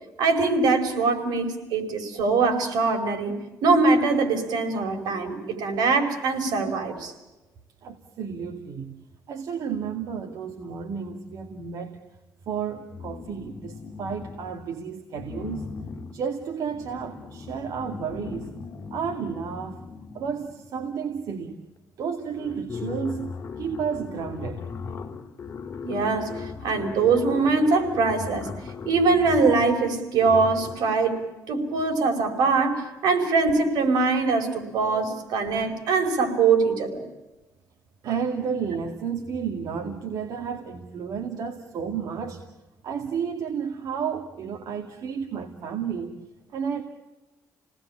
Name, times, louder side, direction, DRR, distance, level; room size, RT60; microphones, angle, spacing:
voice 1, 0.2-7.1 25.8-28.5 28.8-31.2 31.5-37.0, right 4 dB, 85° right, 4 dB, 5.0 m, -23 dB
voice 2, 7.8-9.0 9.3-12.0 12.5-15.7 16.1-18.5 18.9-19.8 20.1-21.6 22.0-24.6 34.3-34.6 38.0-42.4 42.8-46.1 46.5-46.8, right 6 dB, 65° right, 3 dB, 2.3 m, -32 dB
sound 1, 12.9-14.7 15.1-20.8 21.8-21.9 22.1-31.0, left 5 dB, 40° left, 2.7 m, -38 dB
29.5 x 19.5 x 8.6 m, 1.1 s
cardioid pair, 135°, 7 cm